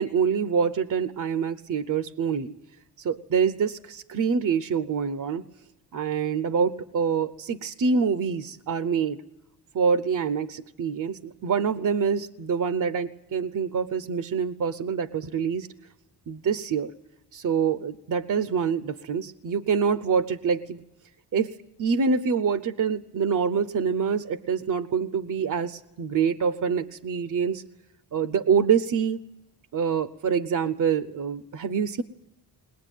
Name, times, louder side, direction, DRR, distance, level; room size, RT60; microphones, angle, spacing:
voice 1, 0.0-2.6 3.0-5.4 5.9-9.2 9.7-15.7 16.3-16.9 17.3-20.8 21.3-21.5 21.8-27.6 28.1-29.2 29.7-32.0, right 6 dB, 50° right, 13 dB, 0.8 m, -26 dB
21.0 x 20.5 x 9.2 m, 0.90 s
wide cardioid pair, 130°, 40 cm